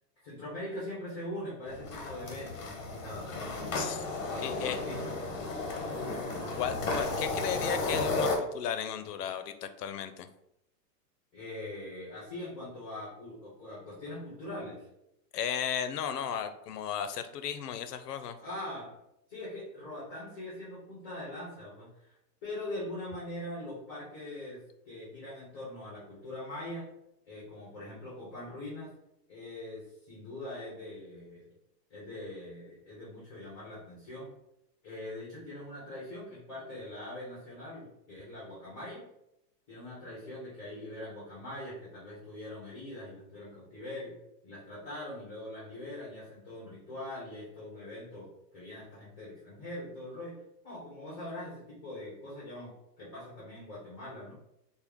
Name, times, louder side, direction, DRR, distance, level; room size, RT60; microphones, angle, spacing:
voice 1, 0.2-3.9 4.3-5.1 11.3-14.9 18.4-18.9 19.3-22.2 22.4-26.8 27.2-28.9 29.3-31.4 31.9-34.3 34.8-39.1 39.7-44.1 44.4-50.4 50.6-54.3, left 1 dB, 15° left, -8 dB, 1.2 m, -42 dB
sound 1, 1.7-8.4, left 3 dB, 50° left, 0.9 m, -34 dB
voice 2, 4.4-4.8 6.6-10.3 15.3-18.4, left 8 dB, 70° left, 10 dB, 0.6 m, -35 dB
4.5 x 2.1 x 3.5 m, 0.81 s
supercardioid pair, 175°, 49 cm